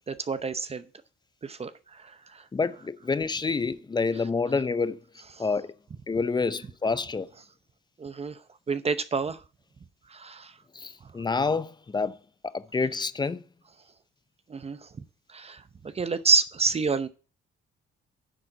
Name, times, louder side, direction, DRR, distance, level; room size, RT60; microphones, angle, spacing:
voice 1, 0.1-0.8 1.4-2.5 5.4-5.5 8.0-9.4 10.1-10.6 14.5-14.9 15.3-17.1, right 4 dB, 30° right, 0.7 m, -29 dB
voice 2, 2.5-5.0 5.4-5.7 6.1-7.3 10.7-12.2 12.4-13.4, left 4 dB, 20° left, 0.6 m, -28 dB
10.0 x 4.4 x 7.7 m
cardioid pair, 90°, 20 cm